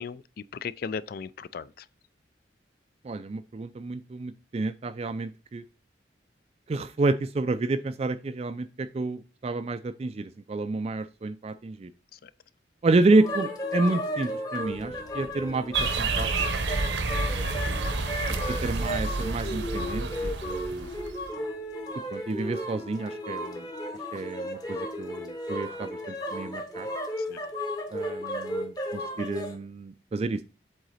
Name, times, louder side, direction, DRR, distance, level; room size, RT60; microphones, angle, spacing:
voice 1, 0.0-1.9 12.1-12.3 17.1-17.2 17.7-18.1 27.2-27.4, left 6 dB, 50° left, 0.3 m, -38 dB
voice 2, 3.0-5.6 6.7-11.9 12.8-16.5 17.1-17.8 18.6-20.9 22.1-23.7 24.1-26.9 27.9-30.5, right 3 dB, 35° right, 0.3 m, -29 dB
sound 1, 13.1-29.5, left 1 dB, 20° left, 0.9 m, -34 dB
Thunder, 14.6-22.8, left 1 dB, 70° left, 1.7 m, -55 dB
sound 2, 15.7-21.3, right 3 dB, 70° right, 0.8 m, -29 dB
7.8 x 3.8 x 4.1 m
head